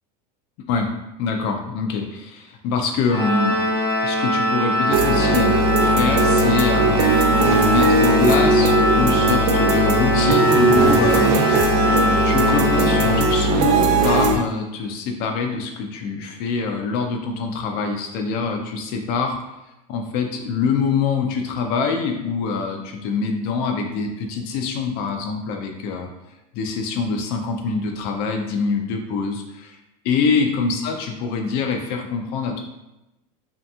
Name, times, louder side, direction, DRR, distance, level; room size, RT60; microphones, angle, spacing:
voice 1, 1.2-3.6 4.0-19.4 19.9-26.1 26.5-29.8 30.0-32.6, left 5 dB, 55° left, 3 dB, 0.4 m, -24 dB
Organ, 3.1-13.8, left 1 dB, 50° right, 0.9 m, -22 dB
sound 1, 4.9-14.4, right 2 dB, 80° right, 0.4 m, -19 dB
2.7 x 2.5 x 2.2 m, 0.94 s
supercardioid pair, 120°, 20 cm